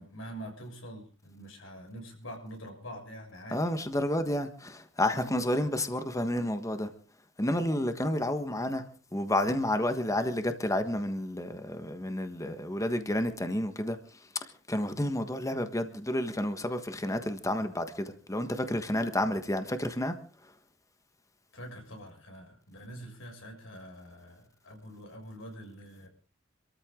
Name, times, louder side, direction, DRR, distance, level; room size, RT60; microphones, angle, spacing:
voice 1, 0.0-3.6 21.5-26.1, equal, 85° left, 6.7 m, -45 dB
voice 2, 3.5-6.9 7.4-8.8 9.1-14.0 14.7-20.1, left 1 dB, 15° left, 1.4 m, -30 dB
26.5 x 14.0 x 3.8 m
head